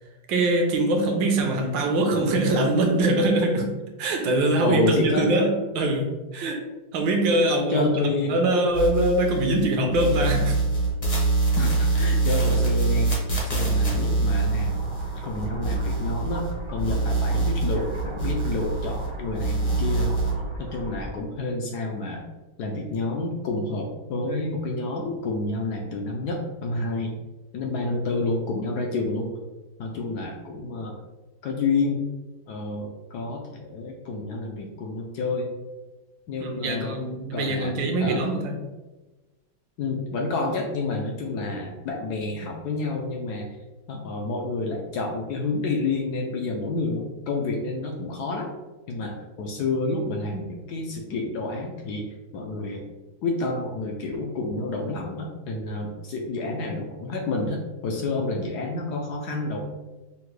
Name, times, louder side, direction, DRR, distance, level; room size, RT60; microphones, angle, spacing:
voice 1, 0.3-3.7 4.0-6.6 6.9-7.9 8.2-10.6 36.4-38.5, right 1 dB, 75° right, 3 dB, 1.3 m, -23 dB
voice 2, 4.6-5.3 7.7-8.3 11.6-14.8 15.2-20.1 20.6-22.2 22.6-27.1 27.5-29.3 29.8-30.9 31.4-32.0 32.5-35.5 36.3-37.0 37.3-37.7 38.0-38.2 39.8-43.5 43.9-48.5 48.9-52.0 52.3-52.8 53.2-59.6, left 3 dB, 75° left, 1 dB, 0.9 m, -29 dB
sound 1, 8.7-9.6 9.9-16.5 16.8-19.1 19.3-20.3, right 3 dB, 40° left, 0.4 m, -24 dB
sound 2, 14.3-21.1, right 1 dB, 30° right, 0.6 m, -36 dB
5.7 x 2.1 x 3.1 m, 1.1 s
omnidirectional pair, 2.2 m